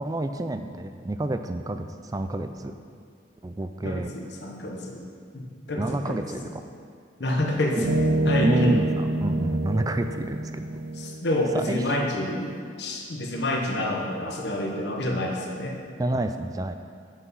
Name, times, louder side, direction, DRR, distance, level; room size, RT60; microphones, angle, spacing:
voice 1, 0.0-2.7 3.4-4.1 5.8-6.5 7.8-7.9 8.4-10.8 11.5-11.8 16.0-16.8, right 1 dB, 20° right, 8 dB, 0.3 m, -29 dB
voice 2, 3.8-5.0 5.3-6.2 7.2-7.9 8.3-8.8 10.9-15.8, left 1 dB, 65° left, 0 dB, 1.1 m, -28 dB
sound 1, 7.4-7.5 7.8-11.2, right 1 dB, 65° right, 1.0 m, -26 dB
8.3 x 5.9 x 5.5 m, 2.2 s
head